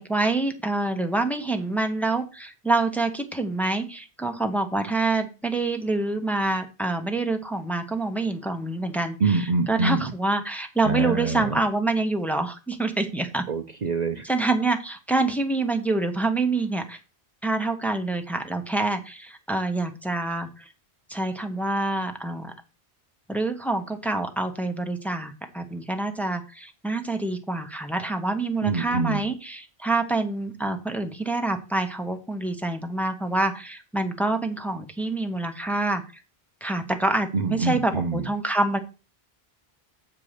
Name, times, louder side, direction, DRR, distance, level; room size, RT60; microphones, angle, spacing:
voice 1, 0.0-13.4 14.2-17.0 17.4-20.7 21.1-22.5 23.3-36.0 36.6-38.8, right 2 dB, ahead, 5 dB, 1.1 m, -26 dB
voice 2, 9.2-10.0 10.9-11.6 13.5-14.2 28.6-29.2 37.3-38.2, right 3 dB, 45° right, 6 dB, 0.7 m, -25 dB
7.6 x 4.7 x 6.7 m, 0.31 s
omnidirectional pair, 1.1 m